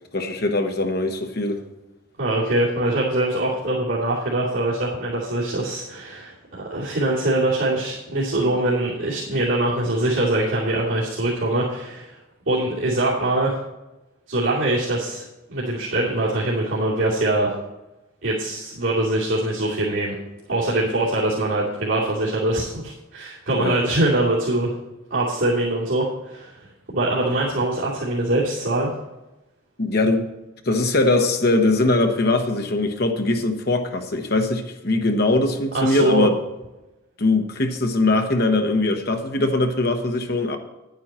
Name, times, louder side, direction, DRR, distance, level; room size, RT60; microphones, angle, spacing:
voice 1, 0.1-1.6 23.5-23.8 29.8-30.3 30.6-36.4 37.2-40.6, left 2 dB, 50° left, 5 dB, 1.2 m, -21 dB
voice 2, 2.2-12.1 12.5-13.6 14.3-15.2 15.5-17.5 18.2-20.2 20.5-24.8 25.1-26.5 26.9-28.9 35.7-36.3, right 1 dB, 75° right, -9 dB, 2.8 m, -23 dB
10.5 x 9.3 x 4.3 m, 1.0 s
head